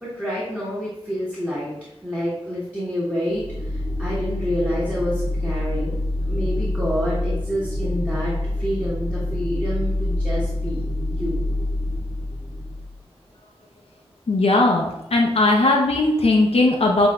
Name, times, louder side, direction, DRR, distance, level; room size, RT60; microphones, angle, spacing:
voice 1, 0.0-10.8 11.1-11.4, equal, 10° right, -9 dB, 1.4 m, -28 dB
sound 1, 3.3-12.9, left 1 dB, 35° right, 0.4 m, -26 dB
voice 2, 14.3-17.1, left 2 dB, 65° left, 0 dB, 0.6 m, -18 dB
7.7 x 2.6 x 2.3 m, 0.93 s
wide cardioid pair, 85°, 11 cm